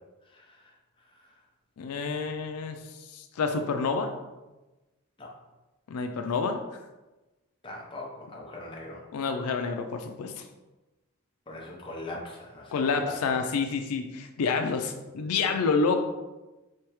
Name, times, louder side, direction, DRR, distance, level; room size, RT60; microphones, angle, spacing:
voice 1, 0.3-0.7 1.2-1.3 5.2-5.3 7.6-9.0 11.5-13.4, left 2 dB, 25° left, -2 dB, 0.7 m, -41 dB
voice 2, 1.8-2.8 3.1-4.1 5.9-6.6 9.1-10.3 12.7-16.0, left 4 dB, 85° left, 6 dB, 0.4 m, -28 dB
4.6 x 3.3 x 3.0 m, 1.1 s
head